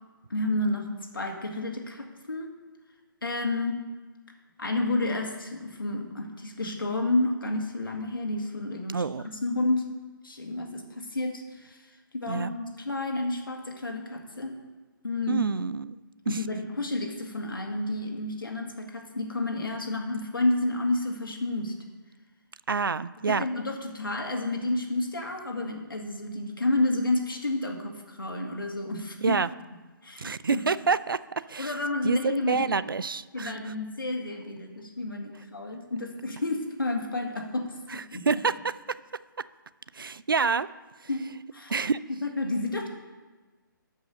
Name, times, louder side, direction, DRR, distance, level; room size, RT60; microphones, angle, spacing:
voice 1, 0.3-0.9 1.1-2.5 3.2-3.8 4.6-9.0 9.4-9.9 10.2-14.5 15.0-15.4 16.3-21.7 23.3-29.4 30.0-30.6 31.6-32.7 33.3-38.2 41.1-41.2 41.5-41.7 42.2-42.9, left 2 dB, 75° left, 3 dB, 2.1 m, -30 dB
voice 2, 8.9-9.2 12.3-12.5 15.3-16.0 16.3-16.4 22.7-23.5 29.2-29.5 30.2-31.7 32.0-33.6 37.9-39.0 39.9-40.7 41.7-42.0, right 5 dB, 75° right, 16 dB, 0.4 m, -27 dB
13.0 x 5.6 x 6.7 m, 1.3 s
figure-of-eight pair, 140°, 12 cm